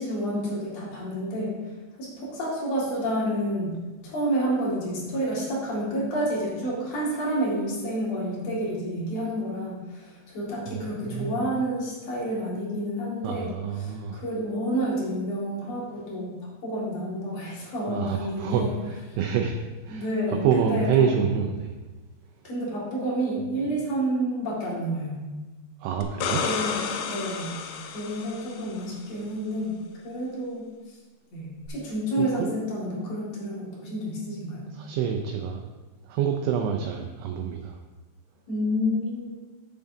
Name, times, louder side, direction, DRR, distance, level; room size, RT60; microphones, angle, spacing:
voice 1, 0.0-1.6 2.0-3.8 4.0-18.7 19.9-20.9 22.4-25.2 26.4-26.7 27.1-27.6 27.9-29.8 30.0-31.0 31.3-34.7 38.5-39.3, equal, 50° left, -5 dB, 2.1 m, -29 dB
voice 2, 10.7-11.4 13.2-14.2 17.9-19.6 19.8-21.7 25.8-26.4 32.2-32.5 34.7-35.6 36.0-37.8, right 7 dB, 85° right, 3 dB, 2.7 m, -27 dB
sound 1, 26.0-28.8 31.7-31.8, left 6 dB, 90° left, 3.5 m, -31 dB
13.0 x 7.0 x 2.7 m, 1.2 s
omnidirectional pair, 6.0 m